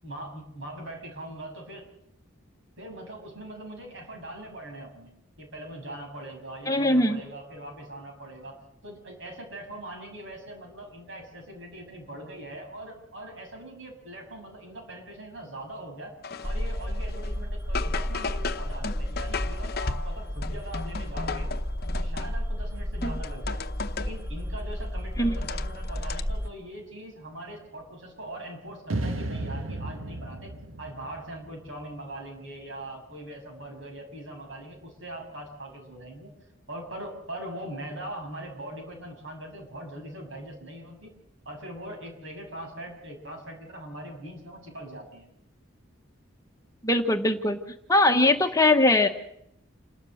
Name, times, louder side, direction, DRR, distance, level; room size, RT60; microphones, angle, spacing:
voice 1, 0.0-1.8 2.8-5.1 5.4-8.6 8.8-16.2 16.4-21.5 22.0-23.6 24.0-36.3 36.7-41.1 41.4-45.3 48.2-48.4, right 1 dB, 65° right, 2 dB, 6.9 m, -41 dB
voice 2, 6.7-7.2 23.0-23.1 25.2-25.3 46.8-47.6 47.9-49.1, left 2 dB, 15° left, 5 dB, 1.2 m, -21 dB
sound 1, 16.2-17.4 17.7-22.6 23.0-24.2 24.7-26.2, left 5 dB, 50° left, 0.9 m, -36 dB
sound 2, 16.4-26.5, equal, 10° right, 1.7 m, -32 dB
sound 3, 28.9-32.1, right 1 dB, 90° right, 1.9 m, -34 dB
28.5 x 13.0 x 7.9 m, 0.77 s
head